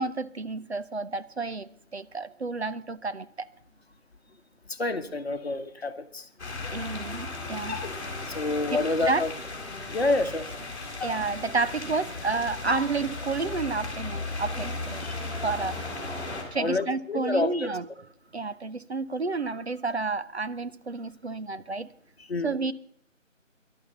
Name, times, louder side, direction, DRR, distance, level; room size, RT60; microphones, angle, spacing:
voice 1, 0.0-3.5 6.7-7.8 8.7-8.8 9.1-9.2 11.0-15.1 15.4-15.8 16.5-17.9 18.3-21.9 22.4-22.7, right 4 dB, 55° right, 0.7 m, -30 dB
voice 2, 4.8-6.2 8.3-9.3 9.9-10.4 15.0-15.1 16.5-17.7 22.3-22.5, left 2 dB, 50° left, 1.3 m, -28 dB
sound 1, 6.4-16.4, left 3 dB, 20° left, 3.6 m, -35 dB
12.5 x 11.5 x 6.6 m
figure-of-eight pair, 170°, 39 cm